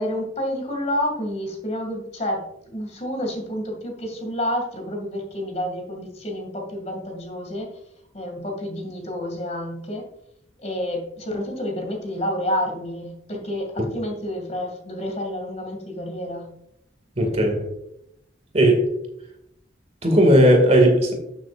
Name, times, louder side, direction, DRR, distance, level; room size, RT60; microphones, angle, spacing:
voice 1, 0.0-7.8 8.1-10.1 10.6-16.5, left 1 dB, 35° left, 3 dB, 2.3 m, -29 dB
voice 2, 17.2-17.7 18.5-18.9 20.0-21.1, right 1 dB, 35° right, 3 dB, 2.2 m, -16 dB
12.5 x 7.2 x 2.5 m, 0.77 s
head